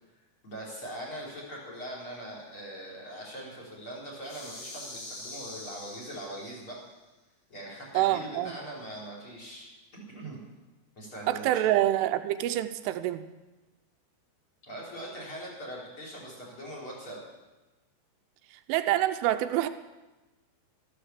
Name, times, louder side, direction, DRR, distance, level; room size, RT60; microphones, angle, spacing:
voice 1, 0.4-6.8 7.5-9.7 10.1-10.4 11.0-11.7 14.6-17.2, right 1 dB, 25° left, -3 dB, 4.8 m, -41 dB
sound 1, 4.2-6.8, left 1 dB, 65° left, 6.7 m, -44 dB
voice 2, 7.9-8.6 11.3-13.2 18.7-19.7, right 14 dB, 85° right, 9 dB, 3.1 m, -26 dB
14.0 x 13.5 x 7.4 m, 1.1 s
omnidirectional pair, 5.7 m